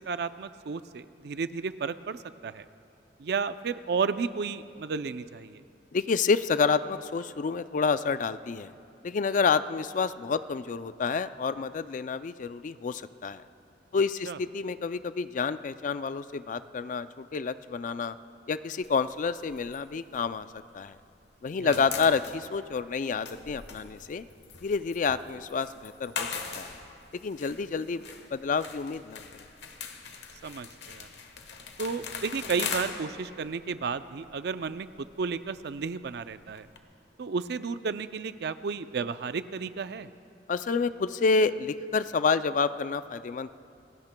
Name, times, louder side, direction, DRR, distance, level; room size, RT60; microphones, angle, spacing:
voice 1, 0.1-2.6 3.2-5.6 14.3-14.4 21.6-21.8 30.4-31.1 31.8-36.7 37.2-40.1, right 5 dB, 60° right, 12 dB, 0.4 m, -33 dB
voice 2, 5.9-8.7 9.0-13.4 13.9-18.2 18.5-20.5 20.7-21.0 21.4-24.2 24.6-26.7 27.2-28.0 28.3-29.2 40.5-43.5, left 5 dB, 45° left, 13 dB, 0.3 m, -29 dB
sound 1, 18.8-21.1 21.3-36.8, left 6 dB, 70° left, 1.1 m, -41 dB
27.5 x 16.5 x 2.2 m, 2.6 s
head